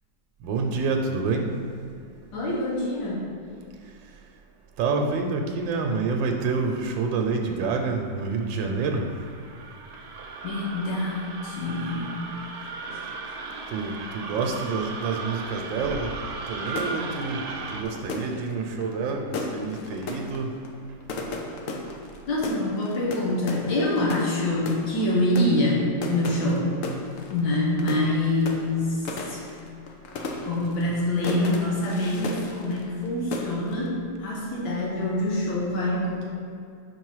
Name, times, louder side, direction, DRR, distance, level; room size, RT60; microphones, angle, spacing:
voice 1, 0.4-1.5 4.8-9.1 12.9-13.3 13.7-17.4 17.7-20.6, right 4 dB, 80° right, 3 dB, 1.4 m, -28 dB
voice 2, 2.3-3.3 10.4-12.2 22.3-26.7 27.3-29.4 30.4-36.2, left 1 dB, 80° left, -4 dB, 1.8 m, -25 dB
sound 1, 7.8-17.8, right 3 dB, 65° right, 1.1 m, -37 dB
sound 2, 16.7-33.1 33.3-33.9, left 2 dB, 65° left, 0.8 m, -35 dB
5.7 x 4.6 x 4.7 m, 2.3 s
omnidirectional pair, 2.0 m